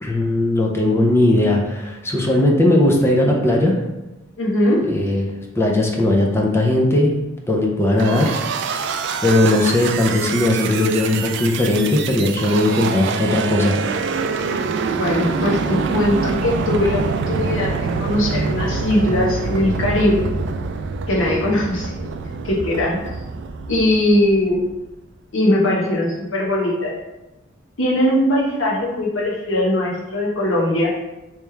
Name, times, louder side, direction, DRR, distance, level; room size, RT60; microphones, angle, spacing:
voice 1, 0.0-3.8 4.9-5.3 5.6-8.3 8.6-9.0 9.2-13.8, left 1 dB, 15° left, -1 dB, 0.5 m, -18 dB
voice 2, 4.4-4.9 15.0-17.0 17.3-20.3 21.1-21.9 22.4-23.0 23.7-24.6 25.3-26.9 27.8-30.9, left 1 dB, 70° left, -3 dB, 1.0 m, -20 dB
sound 1, 8.0-24.6, right 4 dB, 60° right, 0.3 m, -25 dB
3.4 x 3.0 x 3.3 m, 1.0 s
head